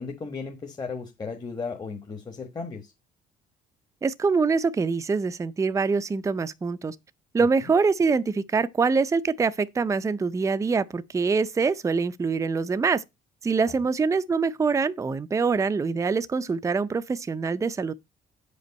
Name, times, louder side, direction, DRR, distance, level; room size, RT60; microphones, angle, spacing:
voice 1, 0.0-2.9 7.6-7.7 13.6-13.7, left 4 dB, 25° left, 1.3 m, -35 dB
voice 2, 4.0-7.0 7.3-13.0 13.4-17.9, right 4 dB, 20° right, 0.5 m, -24 dB
7.7 x 5.3 x 5.2 m
cardioid pair, 110°, 17 cm